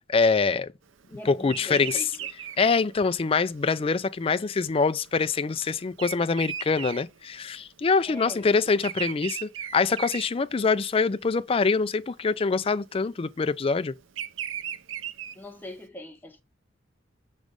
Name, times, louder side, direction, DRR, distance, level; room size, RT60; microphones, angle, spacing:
voice 1, 0.1-0.7 1.3-2.0 2.6-13.9, left 4 dB, 30° left, 0.4 m, -24 dB
voice 2, 1.1-2.3 8.1-8.6 15.3-16.4, left 1 dB, 10° left, 1.0 m, -42 dB
Bird vocalization bird call bird song, 1.4-11.0 11.5-11.8 12.8-15.8, right 9 dB, 85° right, 0.6 m, -37 dB
6.3 x 3.1 x 5.0 m
head